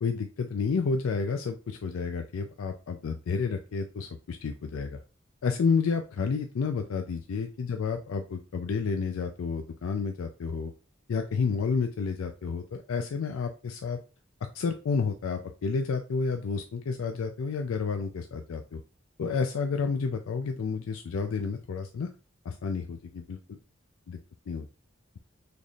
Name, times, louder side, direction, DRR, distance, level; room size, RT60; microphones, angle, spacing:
voice 1, 0.0-5.0 5.4-10.7 11.1-14.0 14.5-18.8 19.2-22.1 22.5-23.6 24.1-24.2 24.5-24.7, left 5 dB, 90° left, 6 dB, 0.4 m, -30 dB
4.1 x 3.3 x 2.3 m, 0.33 s
head